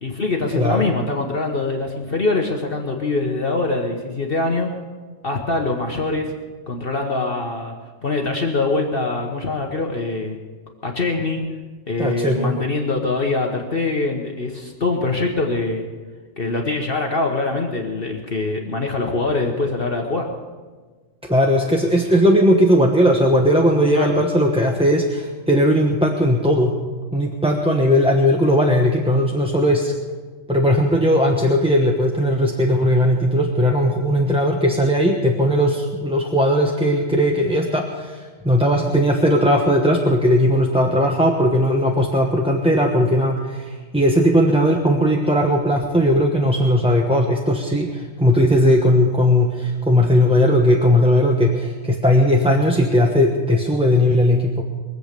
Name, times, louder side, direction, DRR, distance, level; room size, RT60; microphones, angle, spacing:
voice 1, 0.0-4.7 5.2-6.3 6.7-7.8 8.0-10.4 10.8-11.4 11.9-15.9 16.4-20.3 23.9-24.1, left 3 dB, 45° left, 2 dB, 1.4 m, -23 dB
voice 2, 12.0-12.6 21.3-26.8 27.1-29.9 30.5-54.6, equal, 5° right, 0 dB, 1.0 m, -18 dB
23.0 x 8.0 x 6.7 m, 1.4 s
omnidirectional pair, 1.4 m